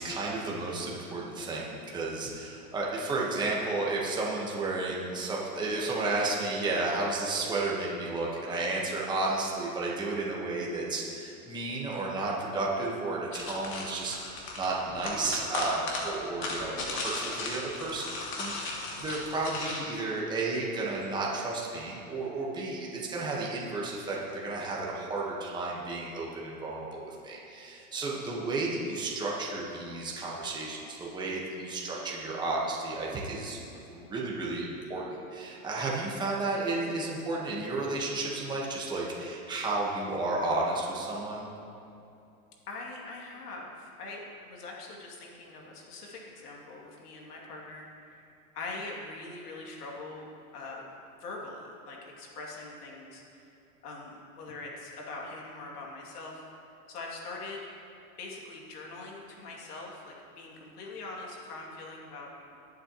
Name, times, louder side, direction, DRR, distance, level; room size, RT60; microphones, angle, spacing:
voice 1, 0.0-18.0 18.4-33.6 33.9-41.5, right 2 dB, 10° right, -4 dB, 1.3 m, -32 dB
sound 1, 13.3-19.8, left 2 dB, 25° left, 2.0 m, -36 dB
voice 2, 42.7-50.3 50.5-50.8 51.2-53.5 53.8-56.4 56.9-57.7 58.2-62.3, left 3 dB, 80° left, -2 dB, 2.7 m, -42 dB
21.5 x 7.8 x 3.1 m, 2.7 s
supercardioid pair, 150°, 46 cm